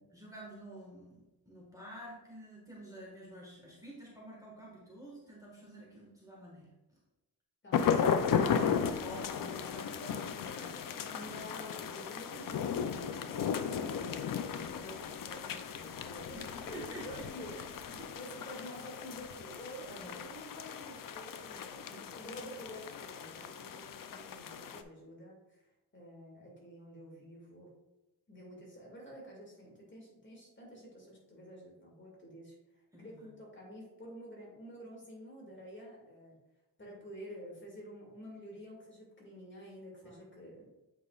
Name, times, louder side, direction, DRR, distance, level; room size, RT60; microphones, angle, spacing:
voice 1, 0.0-6.7 7.8-11.2 13.0-13.5 16.3-17.6 17.9-18.1 19.9-20.1 21.9-22.1 32.9-33.3 40.0-40.3, right 1 dB, 10° right, -4 dB, 1.6 m, -49 dB
sound 1, 7.7-24.8, left 7 dB, 60° left, 0.5 m, -36 dB
voice 2, 11.1-13.3 13.7-17.6 18.1-25.6 25.9-27.7 28.3-32.6 33.0-36.4 36.8-40.7, equal, 30° left, -3 dB, 2.2 m, -49 dB
8.3 x 5.0 x 2.4 m, 1.0 s
wide cardioid pair, 115°, 39 cm